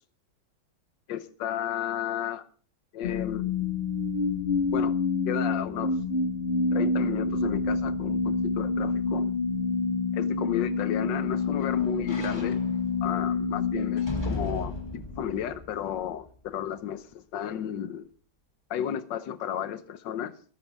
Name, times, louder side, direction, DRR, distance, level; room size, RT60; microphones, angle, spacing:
voice 1, 1.1-2.4 2.9-3.5 4.7-5.0 5.3-5.9 6.7-9.3 10.1-12.6 13.0-18.1 18.7-20.3, left 9 dB, 65° left, 1.6 m, -33 dB
sound 1, 3.0-15.2, left 4 dB, 35° left, 1.4 m, -28 dB
sound 2, 10.4-16.7 17.1-17.2, left 1 dB, 10° left, 2.4 m, -39 dB
21.5 x 11.0 x 3.5 m
omnidirectional pair, 2.3 m